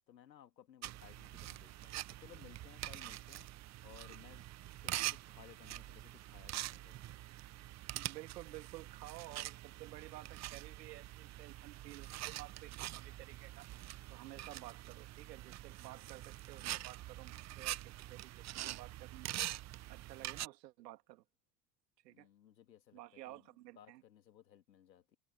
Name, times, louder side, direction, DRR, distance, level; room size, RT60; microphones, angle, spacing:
voice 1, 0.1-3.5 3.8-7.2 14.2-14.6 22.1-23.5 23.8-25.2, left 10 dB, 90° left, 2.1 m, -60 dB
sound 1, 0.8-20.5, right 15 dB, 35° right, 0.8 m, -45 dB
voice 2, 7.9-13.7 14.1-19.3 19.9-21.2 22.0-22.3 22.9-24.0, right 16 dB, 75° right, 2.6 m, -53 dB
hypercardioid pair, 85°, 49 cm